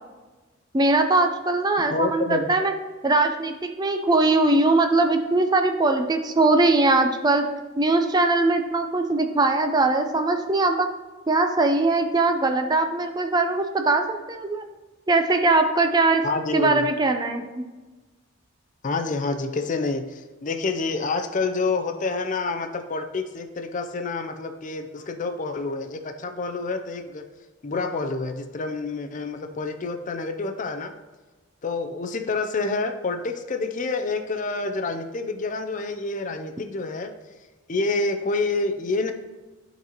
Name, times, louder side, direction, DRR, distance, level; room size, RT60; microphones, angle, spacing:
voice 1, 0.7-2.7 3.0-7.4 7.8-10.9 11.3-14.6 15.1-16.2 16.5-17.6, right 2 dB, 20° right, 6 dB, 0.4 m, -21 dB
voice 2, 1.9-2.6 16.2-16.9 18.8-27.3 27.6-30.9 31.6-37.1 37.7-39.1, left 3 dB, 40° left, 7 dB, 0.5 m, -28 dB
11.0 x 4.0 x 2.9 m, 1.2 s
head